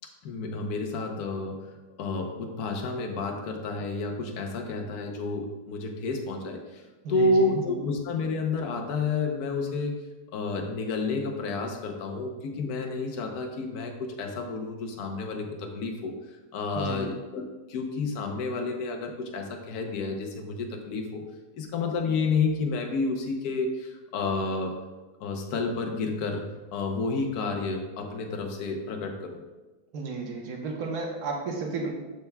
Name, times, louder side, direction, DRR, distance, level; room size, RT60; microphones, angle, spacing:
voice 1, 0.2-1.7 2.0-10.0 10.3-16.2 16.5-17.4 17.7-21.2 21.5-24.7 25.2-29.4, left 3 dB, 75° left, 3 dB, 1.3 m, -30 dB
voice 2, 29.9-31.9, right 4 dB, 75° right, 0 dB, 1.5 m, -33 dB
12.5 x 4.5 x 2.3 m, 1.2 s
omnidirectional pair, 1.7 m